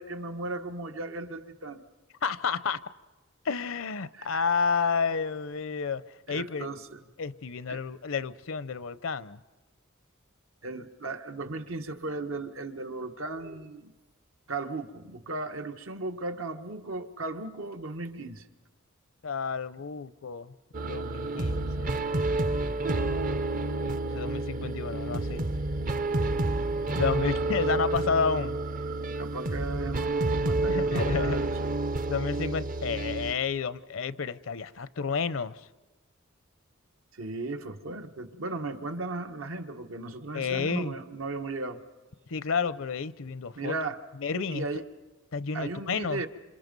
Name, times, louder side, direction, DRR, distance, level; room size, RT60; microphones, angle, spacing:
voice 1, 0.0-1.8 4.1-4.4 6.3-7.0 7.7-7.8 10.6-13.9 14.5-18.5 29.1-31.7 37.1-41.8 43.5-44.0 44.5-44.9 45.5-46.3, right 3 dB, 75° right, 1.3 m, -36 dB
voice 2, 2.2-2.8 3.4-6.0 6.3-6.7 7.2-9.4 19.2-20.5 20.9-21.9 23.8-25.4 26.2-26.3 27.0-28.6 30.7-31.4 32.1-35.6 40.3-40.9 42.3-43.8 44.2-44.6 45.3-46.2, left 5 dB, 70° left, 0.7 m, -30 dB
sound 1, 20.7-33.3, right 2 dB, 40° right, 0.7 m, -29 dB
28.0 x 27.0 x 5.3 m
head